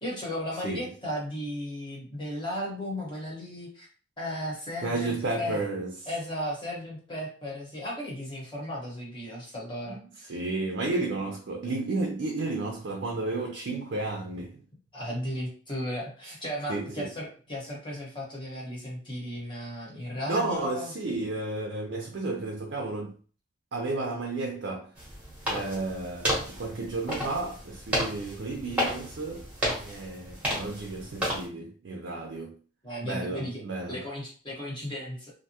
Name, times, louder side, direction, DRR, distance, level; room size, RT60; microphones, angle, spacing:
voice 1, 0.0-3.9 4.2-5.6 6.1-10.4 14.9-20.9 32.8-33.6 33.9-35.3, equal, 25° left, 1.0 m, -35 dB
voice 2, 4.8-5.9 9.9-10.0 10.3-14.6 16.2-16.3 16.7-17.1 20.3-23.2 23.7-24.9 25.4-32.6 33.0-34.0, right 2 dB, 60° right, 0.4 m, -32 dB
sound 1, 25.0-31.4, equal, 5° right, 0.9 m, -32 dB
2.6 x 2.2 x 2.8 m
head